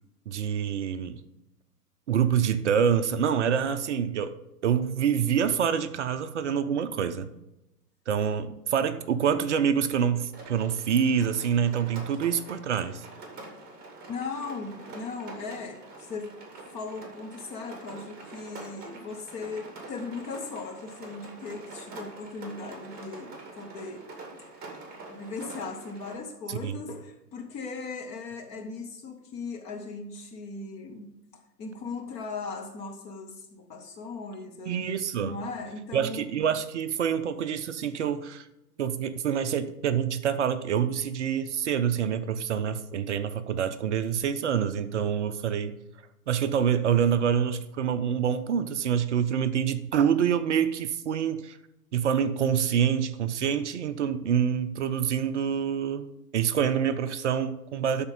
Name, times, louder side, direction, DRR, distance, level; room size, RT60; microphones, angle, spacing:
voice 1, 0.3-1.2 2.1-4.3 4.6-7.3 8.1-13.0 26.5-26.8 34.7-35.4 35.9-38.5 38.8-45.7 46.3-51.6 51.9-58.1, right 8 dB, 45° right, 0.6 m, -26 dB
Rain, 10.3-26.1, right 3 dB, 20° right, 2.2 m, -45 dB
voice 2, 14.1-16.4 16.7-24.1 24.4-24.7 25.1-36.3, left 4 dB, 15° left, 0.6 m, -38 dB
12.0 x 4.3 x 5.3 m
figure-of-eight pair, 115°, 48 cm